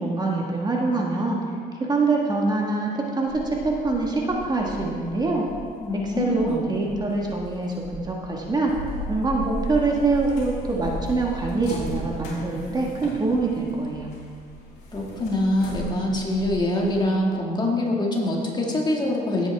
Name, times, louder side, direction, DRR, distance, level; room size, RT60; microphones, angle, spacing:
voice 1, 0.0-1.4 1.8-5.4 6.0-8.7 9.1-14.1, right 3 dB, 25° right, -1 dB, 1.5 m, -24 dB
sound 1, 3.3-17.1, left 1 dB, 65° left, 3.3 m, -37 dB
voice 2, 5.8-6.7 14.9-19.5, left 1 dB, 25° left, -1 dB, 1.9 m, -24 dB
16.5 x 8.1 x 3.5 m, 2.2 s
cardioid pair, 110°, 17 cm